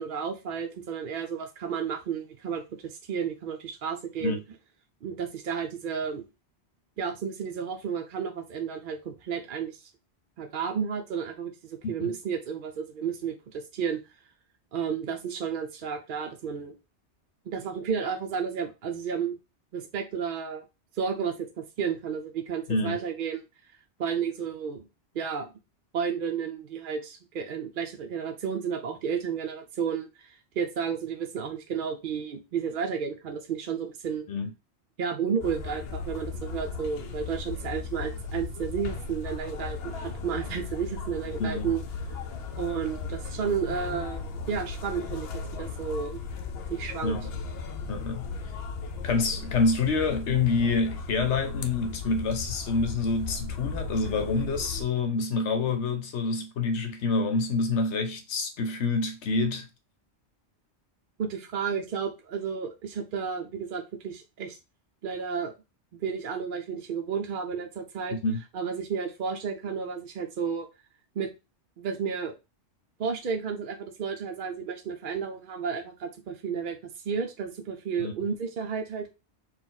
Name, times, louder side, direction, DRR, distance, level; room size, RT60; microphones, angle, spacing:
voice 1, 0.0-4.4 5.0-6.2 7.0-9.9 10.4-14.0 14.7-16.7 17.5-19.4 19.7-20.6 20.9-23.7 24.0-24.9 25.1-25.5 25.9-34.3 35.0-41.8 42.6-46.2 46.7-47.1 61.2-64.6 65.0-65.5 65.9-68.2 68.5-70.7 71.1-71.3 71.8-72.3 73.0-79.1, right 6 dB, 55° right, 0.7 m, -32 dB
sound 1, 35.4-54.8, left 4 dB, 70° left, 0.8 m, -36 dB
voice 2, 47.9-48.3 49.0-59.7 68.2-68.4 78.0-78.1, left 3 dB, 90° left, 1.1 m, -27 dB
4.4 x 2.4 x 3.8 m
omnidirectional pair, 1.1 m